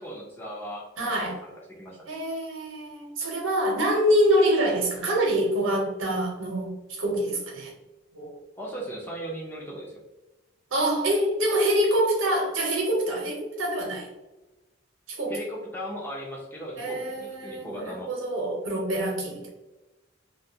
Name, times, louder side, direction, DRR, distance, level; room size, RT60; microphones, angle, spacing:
voice 1, 0.0-1.5 1.8-2.2 8.5-10.0 15.3-18.1, equal, 10° left, -3 dB, 0.4 m, -37 dB
voice 2, 1.0-1.4 2.1-7.7 8.1-8.3 10.7-14.1 15.1-15.4 16.8-19.5, right 1 dB, 85° right, -1 dB, 0.7 m, -25 dB
2.2 x 2.2 x 2.7 m, 1.1 s
head